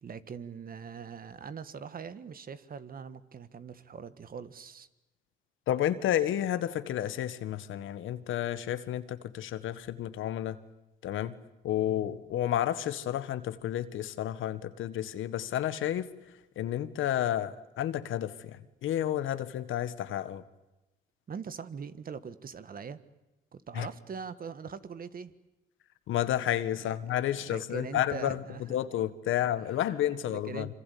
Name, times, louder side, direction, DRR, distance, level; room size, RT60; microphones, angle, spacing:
voice 1, 0.0-4.9 21.3-23.0 23.5-25.3 26.8-26.9 27.4-28.8 30.3-30.7, right 6 dB, 45° right, 13 dB, 1.8 m, -42 dB
voice 2, 5.7-10.6 11.0-11.3 11.6-16.1 16.5-20.4 23.7-23.9 26.1-28.4 28.7-30.7, left 11 dB, 80° left, 13 dB, 1.6 m, -31 dB
26.0 x 25.5 x 8.6 m, 1.0 s
cardioid pair, 90°, 20 cm